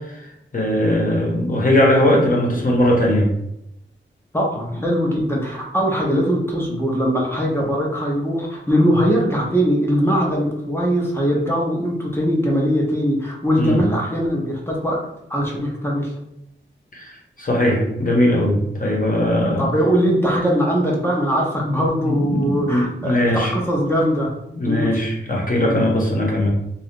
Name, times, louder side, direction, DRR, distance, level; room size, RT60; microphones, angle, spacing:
voice 1, 0.5-3.3 13.6-13.8 16.9-19.7 22.0-23.5 24.5-26.5, left 1 dB, 45° left, -3 dB, 1.0 m, -19 dB
voice 2, 4.3-15.0 15.3-16.1 19.6-24.3 24.6-24.9 25.6-25.9, equal, 10° left, -3 dB, 0.7 m, -21 dB
2.8 x 2.4 x 3.6 m, 0.81 s
wide cardioid pair, 100°, 20 cm